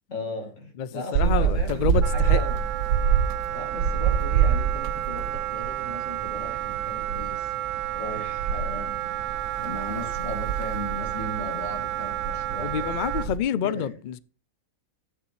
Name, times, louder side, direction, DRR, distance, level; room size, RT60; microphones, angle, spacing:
voice 1, 0.1-2.6 3.5-9.1 9.6-12.9 13.6-14.0, left 2 dB, 55° left, 2.7 m, -37 dB
voice 2, 0.8-2.4 12.6-14.2, left 8 dB, 85° left, 0.4 m, -28 dB
sound 1, 1.1-13.4, right 8 dB, 85° right, 1.2 m, -27 dB
Wind instrument woodwind instrument, 2.0-13.3, right 13 dB, 65° right, 0.9 m, -31 dB
12.5 x 9.9 x 3.1 m
omnidirectional pair, 1.5 m